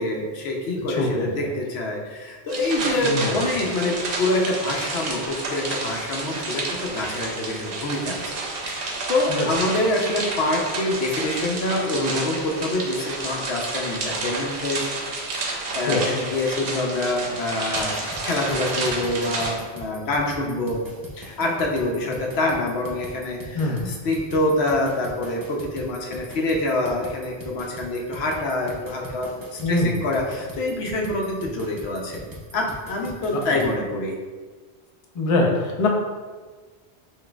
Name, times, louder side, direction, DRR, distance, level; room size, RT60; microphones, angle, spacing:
voice 1, 0.0-8.2 8.7-14.9 15.3-17.9 18.2-20.8 21.1-32.2 32.5-34.1, left 2 dB, 75° left, 0 dB, 0.9 m, -26 dB
voice 2, 0.9-1.5 3.0-3.4 9.4-9.5 15.9-16.0 23.5-24.0 29.6-30.0 33.3-33.4 35.1-35.9, left 2 dB, 45° left, 0 dB, 0.5 m, -23 dB
sound 1, 2.5-19.5, right 3 dB, 65° right, 0.8 m, -30 dB
sound 2, 17.8-33.7, equal, 30° right, 0.4 m, -40 dB
6.0 x 2.5 x 2.2 m, 1.4 s
omnidirectional pair, 1.1 m